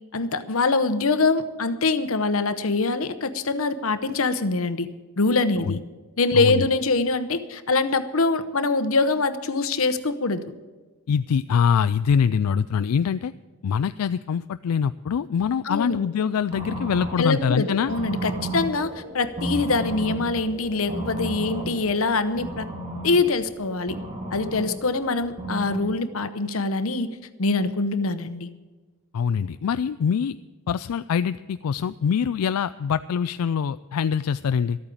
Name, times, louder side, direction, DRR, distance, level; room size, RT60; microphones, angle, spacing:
voice 1, 0.1-4.9 5.2-5.8 6.2-10.4 15.6-16.0 17.2-22.7 23.0-24.0 24.3-28.5, left 3 dB, 65° left, 11 dB, 0.9 m, -24 dB
voice 2, 6.3-6.7 11.1-13.3 13.6-17.9 29.1-30.4 30.7-34.8, left 7 dB, 85° left, 12 dB, 0.4 m, -24 dB
sound 1, 16.5-25.8, right 1 dB, 30° right, 2.2 m, -34 dB
13.5 x 8.8 x 8.4 m, 1.3 s
head